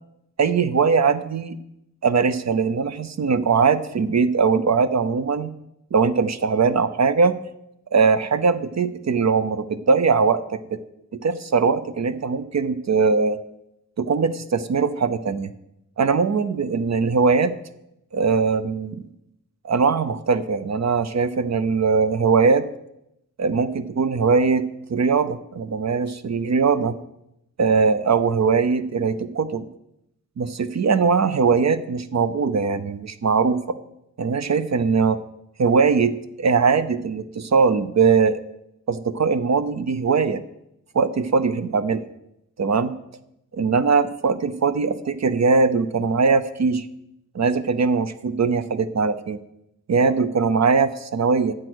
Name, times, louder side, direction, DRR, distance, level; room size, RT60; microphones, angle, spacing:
voice 1, 0.4-1.6 2.0-5.5 5.9-7.4 7.9-10.8 11.2-13.4 14.0-15.5 16.0-17.5 18.1-19.1 19.6-22.6 23.4-27.0 27.6-29.7 30.4-33.6 34.2-35.2 35.6-38.4 38.9-40.4 40.9-42.0 42.6-42.9 43.5-46.9 47.3-49.4 49.9-51.5, right 5 dB, 55° right, 13 dB, 0.7 m, -21 dB
14.0 x 7.6 x 6.2 m, 0.84 s
wide cardioid pair, 135°, 33 cm